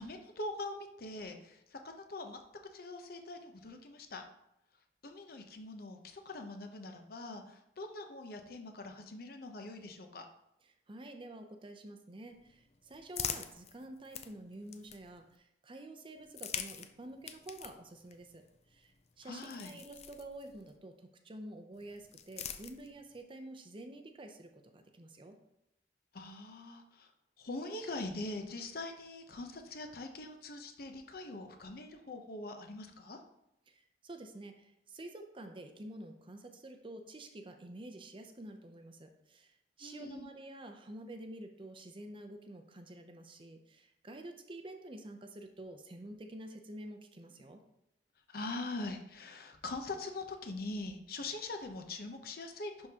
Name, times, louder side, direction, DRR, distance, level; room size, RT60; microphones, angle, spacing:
voice 1, 0.0-2.4 2.7-4.2 5.0-10.2 19.2-19.7 26.1-27.1 27.4-33.2 39.8-40.3 48.3-52.9, left 2 dB, 60° left, 5 dB, 0.8 m, -43 dB
voice 2, 10.9-15.3 15.6-18.4 18.7-18.9 19.2-25.4 33.7-33.8 34.0-39.5 39.8-47.6, right 1 dB, 30° right, 5 dB, 0.6 m, -49 dB
sound 1, 12.3-15.4 16.2-20.8 21.7-23.2, left 8 dB, 40° left, 0.4 m, -45 dB
11.0 x 3.7 x 2.9 m, 0.83 s
head